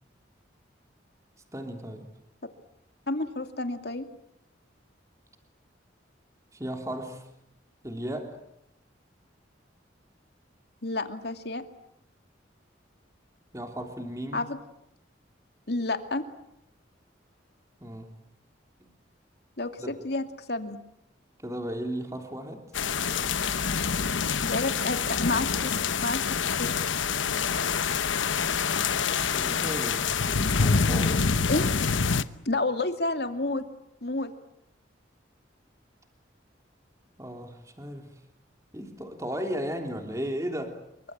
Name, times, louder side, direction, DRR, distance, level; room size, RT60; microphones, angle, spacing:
voice 1, 1.5-2.0 6.5-7.3 7.8-8.3 13.5-14.5 17.8-18.1 18.8-18.9 19.8-19.9 21.4-22.6 29.3-31.3 37.2-38.1 38.7-40.7, equal, 15° right, 4 dB, 3.3 m, -35 dB
voice 2, 3.1-4.1 10.8-11.6 14.3-14.6 15.7-16.2 19.6-20.8 24.4-26.7 31.5-31.7 32.5-33.6 34.0-34.3, left 2 dB, 55° left, 7 dB, 2.5 m, -30 dB
sound 1, 22.7-32.2, left 5 dB, 90° left, 1.1 m, -26 dB
27.5 x 24.0 x 8.9 m, 0.77 s
head